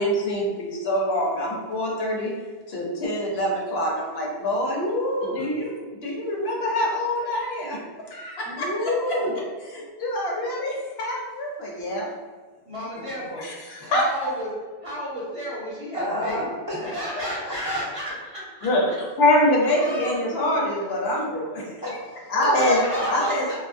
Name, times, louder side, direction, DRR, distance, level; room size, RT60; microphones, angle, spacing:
voice 1, 0.0-2.3 2.7-4.8 5.3-7.8 8.1-8.9 9.7-12.1 13.4-14.0 18.6-21.8 22.3-22.8 23.1-23.5, left 1 dB, 70° left, -2 dB, 0.8 m, -25 dB
voice 2, 4.7-5.5 8.5-9.3 13.8-13.9 15.9-16.8 17.2-17.8 21.8-23.3, left 1 dB, 25° left, -10 dB, 0.5 m, -28 dB
voice 3, 12.6-13.4 13.9-14.5 14.8-16.5 16.8-19.0 19.7-20.9 22.5-23.5, equal, 30° right, -8 dB, 0.8 m, -33 dB
2.8 x 2.2 x 2.4 m, 1.4 s
omnidirectional pair, 1.2 m